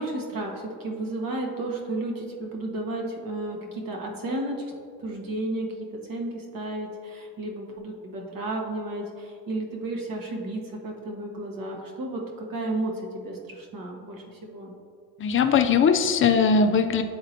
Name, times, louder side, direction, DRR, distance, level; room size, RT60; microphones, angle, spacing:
voice 1, 0.0-4.6 5.0-14.7, right 2 dB, 50° right, 0 dB, 1.3 m, -33 dB
voice 2, 15.2-17.0, left 5 dB, 30° left, 7 dB, 0.5 m, -20 dB
10.0 x 3.9 x 2.9 m, 2.3 s
supercardioid pair, 70°, 43 cm